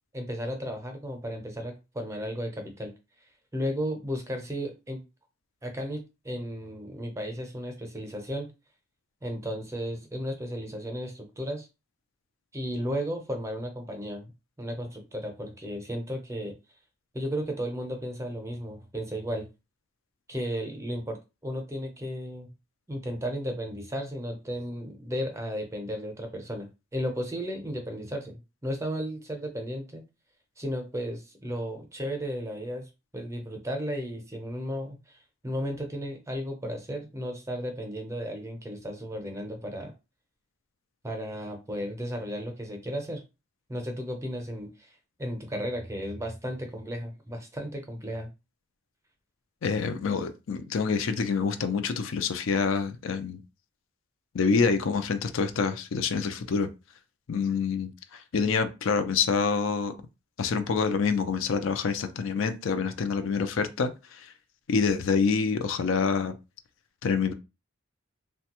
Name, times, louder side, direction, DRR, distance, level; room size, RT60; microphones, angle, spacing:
voice 1, 0.1-2.9 3.5-5.0 5.6-8.5 9.2-11.7 12.5-14.3 14.6-16.5 17.1-19.5 20.3-21.2 21.4-22.5 22.9-26.7 26.9-30.0 30.6-35.2 35.4-39.9 41.0-43.2 43.7-44.9 45.2-48.3, equal, 15° right, 0.6 m, -34 dB
voice 2, 49.6-53.4 54.3-56.7 57.3-59.9 60.4-64.3 64.7-66.3 67.0-67.3, left 5 dB, 70° left, 0.4 m, -27 dB
3.2 x 2.2 x 2.9 m
head